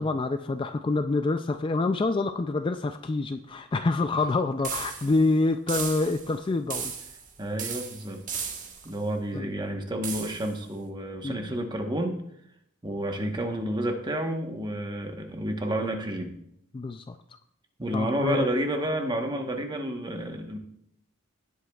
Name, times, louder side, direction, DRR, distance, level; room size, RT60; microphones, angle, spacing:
voice 1, 0.0-6.9 9.3-9.5 11.2-11.6 16.7-17.2 17.9-18.5, left 3 dB, 25° left, 8 dB, 0.3 m, -27 dB
sound 1, 4.6-5.2 5.7-6.3 6.7-7.3 7.6-8.9 10.0-10.5, right 6 dB, 40° right, 1.3 m, -35 dB
voice 2, 7.4-8.2 8.8-12.2 12.8-16.3 17.8-20.6, right 1 dB, 20° right, 4 dB, 1.1 m, -30 dB
17.5 x 8.3 x 2.4 m, 0.71 s
head